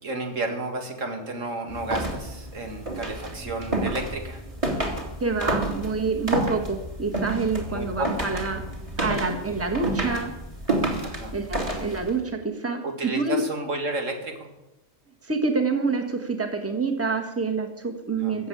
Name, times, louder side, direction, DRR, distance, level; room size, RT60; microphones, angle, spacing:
voice 1, 0.0-4.4 7.7-8.2 11.0-11.4 12.8-14.5 18.2-18.4, right 2 dB, 85° right, 3 dB, 2.4 m, -32 dB
sound 1, 1.7-12.2, right 1 dB, 25° right, 2.7 m, -30 dB
voice 2, 5.2-8.6 9.0-10.3 11.3-13.4 15.2-18.5, right 4 dB, 10° right, 5 dB, 1.4 m, -27 dB
15.0 x 7.4 x 8.6 m, 0.97 s
omnidirectional pair, 1.3 m